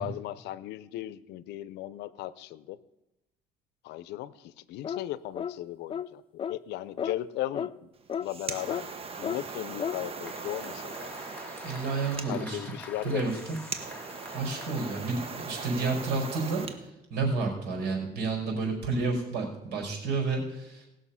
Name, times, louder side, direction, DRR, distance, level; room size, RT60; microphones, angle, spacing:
voice 1, 0.0-2.8 3.8-7.9 8.2-8.9 9.2-11.2 12.3-13.2, left 14 dB, 85° left, 17 dB, 0.6 m, -37 dB
sound 1, 4.8-5.1 5.4-5.6 5.9-6.1 6.4-6.6 7.0-7.2 7.5-7.7 8.1-8.3 8.7-8.8 9.2-9.4 9.8-10.0, left 8 dB, 30° left, 0.4 m, -32 dB
sound 2, 8.0-16.8, right 4 dB, 35° right, 1.3 m, -40 dB
Applause, 9.2-16.3, left 2 dB, 10° left, 1.6 m, -48 dB
voice 2, 11.6-12.6 13.0-13.4 14.3-15.2 15.4-16.6 17.1-20.9, right 3 dB, 80° right, 2 dB, 4.9 m, -30 dB
19.0 x 6.5 x 5.7 m, 0.95 s
cardioid pair, 110°, 17 cm